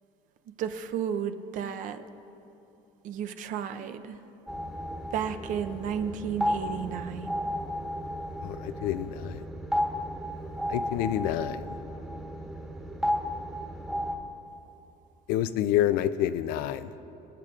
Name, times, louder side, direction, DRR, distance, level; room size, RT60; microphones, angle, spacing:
voice 1, 0.6-2.0 3.0-4.2 5.1-7.4, right 8 dB, 60° right, 8 dB, 0.7 m, -33 dB
sound 1, 4.5-14.2, equal, 5° right, 1.2 m, -33 dB
voice 2, 8.4-9.4 10.7-11.6 15.3-16.9, left 12 dB, 80° left, 13 dB, 0.5 m, -28 dB
26.0 x 9.0 x 2.4 m, 3.0 s
cardioid pair, 115°, 15 cm